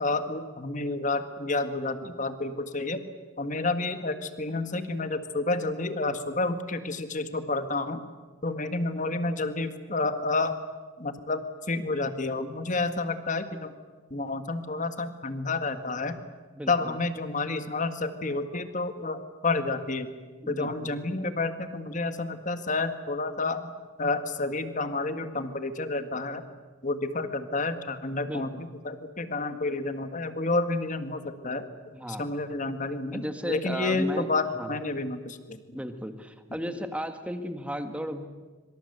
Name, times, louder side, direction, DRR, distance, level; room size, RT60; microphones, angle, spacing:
voice 1, 0.0-3.0 3.4-8.0 8.4-10.6 11.0-11.4 11.7-13.7 14.1-16.2 16.7-20.1 20.5-23.7 24.0-26.4 26.8-31.7 32.1-35.6, left 3 dB, 40° left, 9 dB, 1.8 m, -30 dB
voice 2, 16.5-17.0 20.4-21.0 28.3-28.7 31.9-32.2 33.1-34.3 34.6-34.7 35.7-38.3, equal, 5° right, 7 dB, 1.7 m, -35 dB
25.5 x 24.5 x 8.1 m, 1.4 s
head